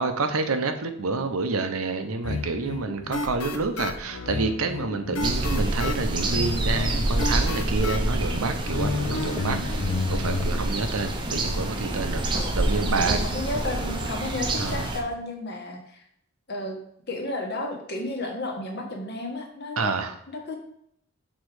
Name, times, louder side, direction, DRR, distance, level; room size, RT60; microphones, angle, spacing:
voice 1, 0.0-13.2 14.6-14.9 19.8-20.1, right 3 dB, 75° right, 7 dB, 0.7 m, -28 dB
sound 1, 2.2-10.5, left 3 dB, 85° left, 0.7 m, -32 dB
sound 2, 5.2-15.0, right 1 dB, 20° right, 0.6 m, -27 dB
voice 2, 12.3-16.0 16.5-16.8 17.1-19.9 20.3-20.6, left 2 dB, 50° left, 1 dB, 1.2 m, -33 dB
6.3 x 3.7 x 4.8 m, 0.72 s
head